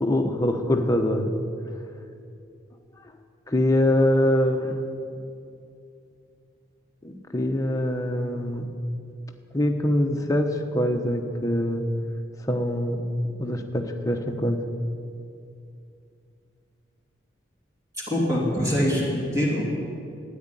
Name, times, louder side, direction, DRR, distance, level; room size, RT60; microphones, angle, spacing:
voice 1, 0.0-1.3 3.5-4.8 7.0-8.7 9.5-11.8 12.5-13.0 13.4-14.6, left 1 dB, 15° left, 4 dB, 1.0 m, -24 dB
voice 2, 18.1-19.8, equal, 15° right, -5 dB, 2.9 m, -24 dB
13.0 x 9.8 x 9.9 m, 2.5 s
head